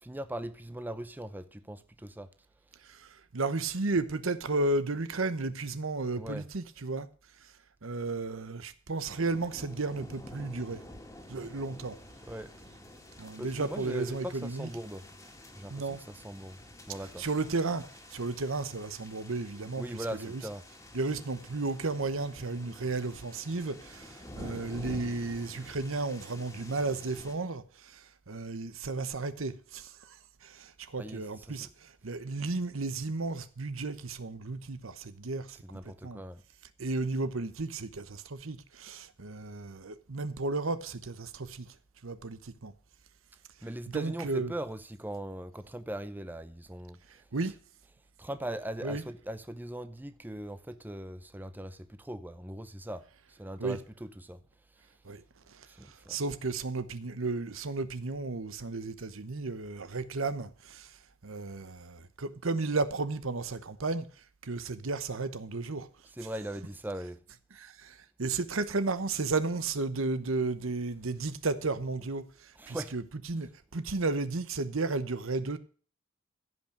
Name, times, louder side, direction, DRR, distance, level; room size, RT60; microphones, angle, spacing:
voice 1, 0.0-2.3 6.2-6.5 12.3-12.5 13.4-15.1 15.5-16.6 16.9-17.3 19.8-20.6 31.0-31.7 35.6-36.4 43.6-47.0 48.2-54.4 55.7-56.2 66.1-67.2 72.6-72.9, right 1 dB, 10° right, 0.7 m, -40 dB
voice 2, 2.9-7.1 7.4-7.5 7.8-10.8 11.3-12.0 13.2-14.7 15.7-16.0 17.0-20.5 20.9-35.6 35.8-36.2 36.8-41.7 42.0-42.7 43.6-44.6 47.1-47.6 48.8-49.1 53.6-53.8 55.0-61.0 61.2-64.1 64.4-65.9 66.2-66.7 67.6-75.6, right 3 dB, 70° right, 1.0 m, -34 dB
sound 1, 9.1-27.3, left 1 dB, 15° left, 2.2 m, -49 dB
15.5 x 5.8 x 6.6 m
head